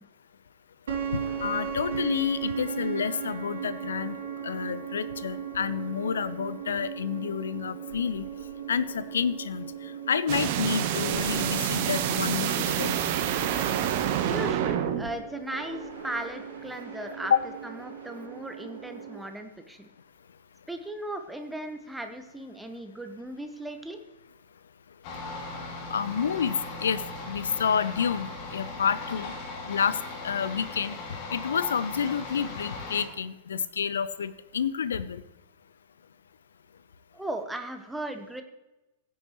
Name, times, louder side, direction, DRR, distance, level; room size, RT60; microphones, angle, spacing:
sound 1, 0.9-19.2, right 7 dB, 60° right, 2.6 m, -38 dB
voice 1, 1.1-4.2 4.4-8.3 8.7-13.0 17.3-17.4 25.9-27.0 27.3-29.3 29.7-30.0 30.2-30.9 31.3-35.2, left 7 dB, 65° left, 15 dB, 0.6 m, -29 dB
sound 2, 10.3-15.1, right 10 dB, 45° right, 1.1 m, -27 dB
voice 2, 14.3-17.3 17.6-19.9 20.7-24.0 37.1-38.4, right 1 dB, 5° right, 6 dB, 1.2 m, -37 dB
sound 3, 25.0-33.0, left 3 dB, 40° left, 2.2 m, -38 dB
16.0 x 9.3 x 3.1 m, 1.0 s
figure-of-eight pair, 95°, 0 cm